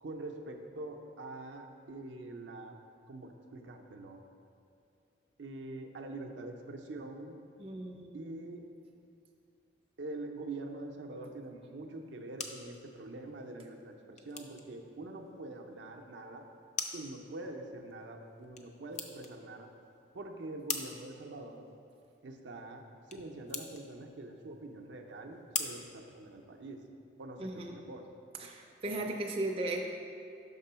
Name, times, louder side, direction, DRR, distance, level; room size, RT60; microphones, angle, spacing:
voice 1, 0.0-2.8 3.1-4.2 5.4-7.4 8.1-8.6 10.0-16.4 16.9-19.7 20.1-21.7 22.2-22.8 23.1-26.8 27.2-28.1, right 2 dB, 80° right, 3 dB, 0.5 m, -44 dB
voice 2, 7.6-8.2 27.4-27.8 28.4-29.8, right 2 dB, 30° right, 1 dB, 0.4 m, -36 dB
sound 1, 11.9-26.9, left 5 dB, 40° left, 0.4 m, -45 dB
6.0 x 3.7 x 5.5 m, 2.5 s
head